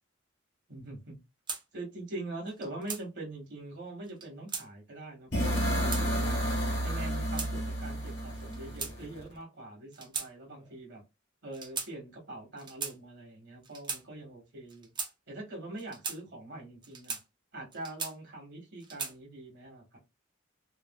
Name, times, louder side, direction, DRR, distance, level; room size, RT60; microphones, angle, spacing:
voice 1, 0.7-1.2 1.7-6.4 6.8-11.0 11.4-14.9 15.3-17.2 17.5-20.0, right 2 dB, 60° right, 1.2 m, -43 dB
sound 1, 1.5-1.6 2.5-3.0 4.1-4.7 5.4-6.1 6.9-7.5 8.4-9.3 9.9-10.3 10.6-10.8 11.5-11.9 12.6-13.0 13.6-14.0 14.7-15.1 15.8-16.2 16.8-17.2 17.7-18.4 18.8-19.2, right 5 dB, 25° right, 0.5 m, -38 dB
sound 2, 5.3-9.2, equal, 60° left, 1.4 m, -31 dB
3.0 x 2.3 x 2.2 m
head